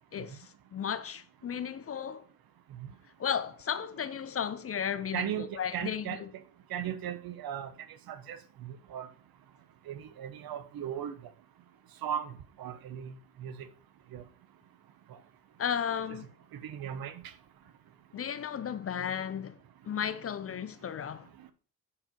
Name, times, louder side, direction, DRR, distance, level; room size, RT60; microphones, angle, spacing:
voice 1, 0.1-2.3 3.2-6.3 15.6-16.3 18.1-19.6 19.8-21.3, left 8 dB, 30° left, 0.7 m, -34 dB
voice 2, 5.1-6.2 6.7-7.7 8.1-9.1 9.9-11.1 12.0-13.7 14.1-14.2 16.1-16.2 16.5-17.2, right 9 dB, 50° right, 1.1 m, -37 dB
8.6 x 4.8 x 5.3 m
figure-of-eight pair, 50°, 45 cm